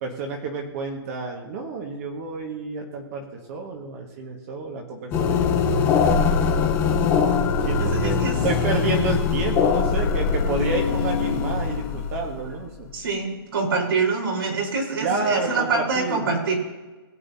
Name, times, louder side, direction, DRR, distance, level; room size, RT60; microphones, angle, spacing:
voice 1, 0.0-6.9 7.6-8.2 8.4-12.9 15.0-16.3, right 3 dB, 40° right, 1 dB, 1.7 m, -30 dB
sound 1, 5.1-13.0, left 5 dB, 20° left, 1.1 m, -22 dB
voice 2, 7.8-8.4 12.9-16.6, right 4 dB, 70° right, -2 dB, 4.3 m, -25 dB
21.0 x 8.1 x 2.8 m, 1.2 s
hypercardioid pair, 155°, 13 cm